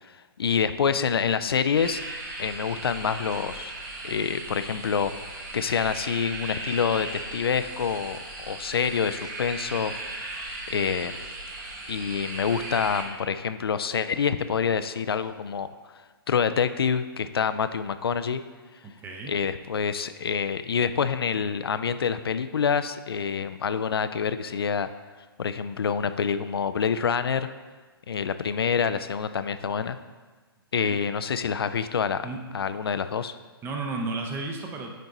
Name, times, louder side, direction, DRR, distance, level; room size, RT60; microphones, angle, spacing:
voice 1, 0.1-2.0 2.4-3.7 4.0-9.9 10.7-11.2 11.9-15.9 16.3-18.4 19.3-24.9 25.4-27.5 28.1-30.0 30.7-32.2 32.5-33.3, left 6 dB, 75° left, 11 dB, 0.4 m, -27 dB
sound 1, 1.7-13.0, right 2 dB, 45° right, 1.4 m, -37 dB
voice 2, 18.8-19.3 30.8-31.0 32.2-32.4 33.6-35.0, right 3 dB, 15° right, 2 dB, 0.7 m, -33 dB
9.1 x 4.5 x 2.7 m, 1.3 s
figure-of-eight pair, 125°, 13 cm